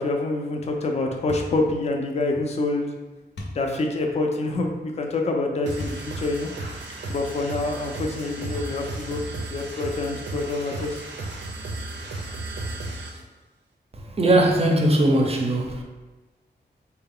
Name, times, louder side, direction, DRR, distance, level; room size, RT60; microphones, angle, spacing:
voice 1, 0.0-2.9 3.4-6.5 7.1-9.2 9.5-11.0, left 2 dB, 35° left, 2 dB, 0.4 m, -26 dB
sound 1, 1.3-1.6 3.4-3.6 5.8-6.1 6.7-6.8 8.5-9.0, left 1 dB, 85° left, 0.7 m, -35 dB
sound 2, 5.6-13.2, right 2 dB, 85° right, 0.6 m, -34 dB
voice 2, 14.2-15.8, right 1 dB, 35° right, 2 dB, 0.5 m, -19 dB
3.8 x 2.2 x 3.6 m, 1.2 s
wide cardioid pair, 135°, 18 cm